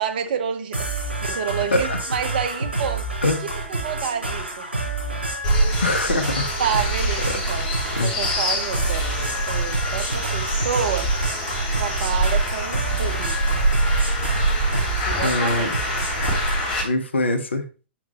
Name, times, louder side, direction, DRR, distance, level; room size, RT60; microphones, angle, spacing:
voice 1, 0.0-3.1 3.7-4.7 6.6-7.8 8.0-9.1 9.5-11.1 11.7-13.6 15.0-16.3, right 8 dB, 50° right, 0.9 m, -29 dB
sound 1, 0.7-16.7, right 2 dB, 80° right, 3.7 m, -29 dB
sound 2, 5.4-16.8, right 1 dB, 40° left, 3.3 m, -24 dB
voice 2, 5.8-6.5 7.2-7.4 7.9-8.1 15.2-15.8 16.8-17.7, left 2 dB, 75° left, 1.0 m, -23 dB
7.2 x 6.0 x 2.8 m
figure-of-eight pair, 105°, 6 cm